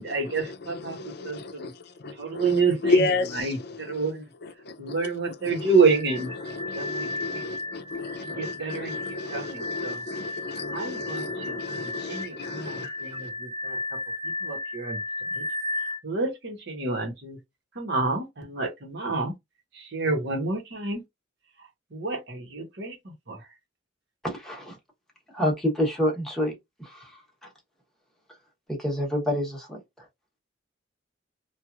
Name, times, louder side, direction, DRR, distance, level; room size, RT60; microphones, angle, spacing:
voice 1, 0.0-1.7 2.1-4.3 4.8-6.3 6.7-7.4 8.2-9.0 9.3-10.0 10.7-14.0 14.2-15.0 15.3-15.4 15.8-17.4 17.7-19.3 19.7-21.0 21.6-23.5, right 4 dB, 65° right, 1.2 m, -29 dB
voice 2, 0.9-1.7 2.0-2.5 2.8-3.5 4.7-4.9 5.4-5.7 6.4-13.2, left 2 dB, 60° left, 0.6 m, -31 dB
sound 1, 5.8-16.0, left 2 dB, 25° right, 0.6 m, -34 dB
voice 3, 24.2-24.8 25.3-26.5 26.8-27.5 28.7-30.0, equal, ahead, 1.1 m, -28 dB
3.0 x 2.5 x 2.4 m
head